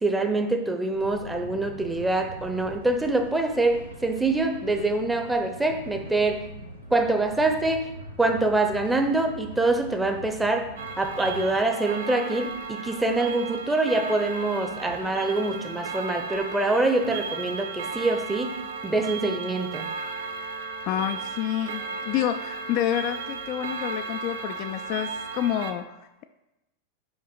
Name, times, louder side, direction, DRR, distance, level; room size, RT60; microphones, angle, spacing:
voice 1, 0.0-6.4 6.9-7.9 8.2-10.7 11.0-18.5 18.8-19.9, right 2 dB, 10° right, 5 dB, 0.7 m, -25 dB
sound 1, 0.9-11.5, equal, 85° right, 0.9 m, -43 dB
Clock, 10.8-25.7, right 4 dB, 60° right, 0.5 m, -35 dB
voice 2, 20.9-26.3, left 11 dB, 40° left, 8 dB, 0.3 m, -29 dB
5.5 x 4.9 x 3.9 m, 0.95 s
figure-of-eight pair, 90°, 0 cm